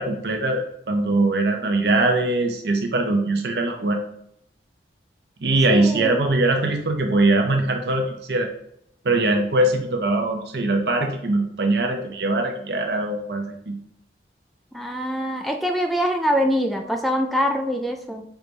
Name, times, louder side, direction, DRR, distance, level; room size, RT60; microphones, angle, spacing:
voice 1, 0.0-4.0 5.4-8.5 9.0-13.8, right 2 dB, 70° right, 4 dB, 0.7 m, -22 dB
voice 2, 5.7-6.2 14.7-18.2, equal, ahead, 3 dB, 0.4 m, -24 dB
4.7 x 4.0 x 5.3 m, 0.73 s
head